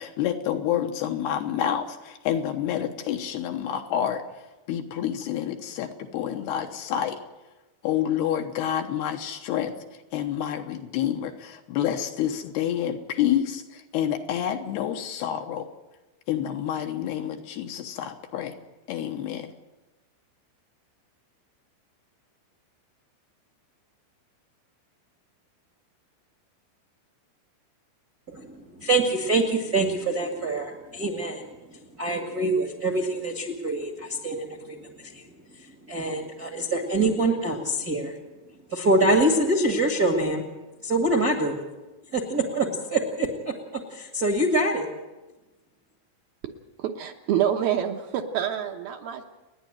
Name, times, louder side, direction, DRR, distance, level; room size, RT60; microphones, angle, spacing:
voice 1, 0.0-4.2 4.7-7.2 7.8-15.7 16.3-18.6 18.9-19.5, left 10 dB, 75° left, 5 dB, 3.0 m, -28 dB
voice 2, 28.8-31.4 31.7-35.2 35.9-38.1 38.7-40.4 40.8-41.7 42.1-43.5 43.9-44.9, right 2 dB, 40° right, 2 dB, 1.4 m, -25 dB
voice 3, 46.8-49.2, right 10 dB, 70° right, 3 dB, 2.6 m, -27 dB
30.0 x 10.5 x 8.9 m, 1.1 s
omnidirectional pair, 5.1 m